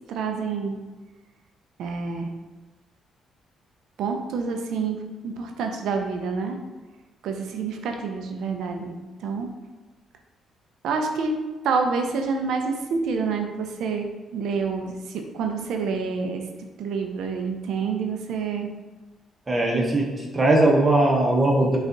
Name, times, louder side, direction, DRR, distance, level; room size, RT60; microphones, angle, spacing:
voice 1, 0.1-0.8 1.8-2.3 4.0-6.6 7.2-8.9 9.2-9.5 10.8-11.3 11.6-16.4 16.8-18.7, right 5 dB, 80° right, 4 dB, 0.5 m, -28 dB
voice 2, 19.5-20.1 20.3-21.8, right 2 dB, 25° right, -1 dB, 0.8 m, -19 dB
5.2 x 2.4 x 3.8 m, 1.2 s
cardioid pair, 90°, 0 cm